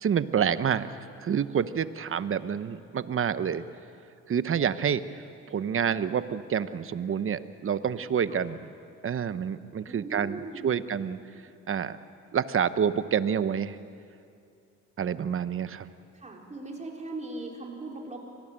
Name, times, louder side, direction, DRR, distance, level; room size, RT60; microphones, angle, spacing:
voice 1, 0.0-0.9 1.2-3.6 4.3-5.2 5.5-8.6 9.0-11.2 11.7-12.0 12.3-13.8 15.0-15.9, right 7 dB, 45° right, 13 dB, 1.0 m, -28 dB
voice 2, 9.8-11.0 16.1-18.2, right 2 dB, 25° right, -1 dB, 4.8 m, -39 dB
25.0 x 19.0 x 8.9 m, 2.5 s
cardioid pair, 90°, 30 cm